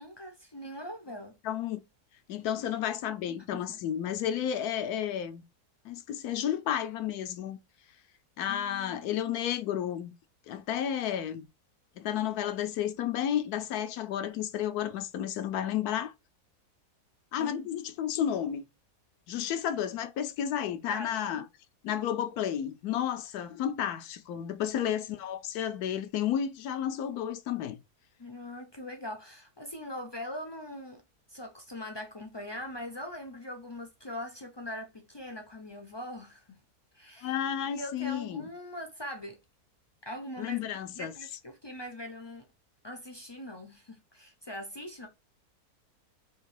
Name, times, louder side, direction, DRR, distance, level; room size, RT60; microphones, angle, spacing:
voice 1, 0.0-1.3 3.5-3.8 8.5-9.2 17.4-17.6 20.9-21.4 24.7-24.8 28.2-31.0 31.3-36.6 36.9-39.4 40.0-42.5 42.8-45.1, left 1 dB, 45° left, 0.3 m, -42 dB
voice 2, 1.4-1.8 2.3-5.4 5.8-7.6 8.4-10.1 10.5-11.5 12.0-16.1 17.3-18.6 19.3-21.4 21.8-27.8 37.2-38.5 40.4-41.1, left 10 dB, 80° left, 1.1 m, -32 dB
3.7 x 2.9 x 4.6 m
omnidirectional pair, 1.6 m